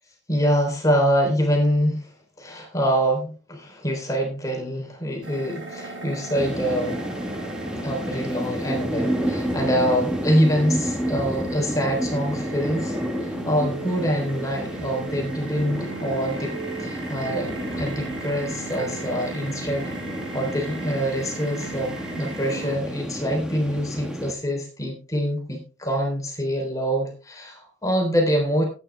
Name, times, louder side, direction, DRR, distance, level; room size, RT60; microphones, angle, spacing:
voice 1, 0.3-2.1 2.4-7.0 7.8-13.0 13.2-16.5 16.8-19.9 20.3-28.6, equal, 15° left, 1 dB, 3.5 m, -25 dB
sound 1, 5.2-22.7, right 3 dB, 80° right, 6.3 m, -38 dB
sound 2, 6.3-24.3, equal, 5° right, 1.5 m, -31 dB
14.5 x 9.3 x 3.4 m, 0.34 s
head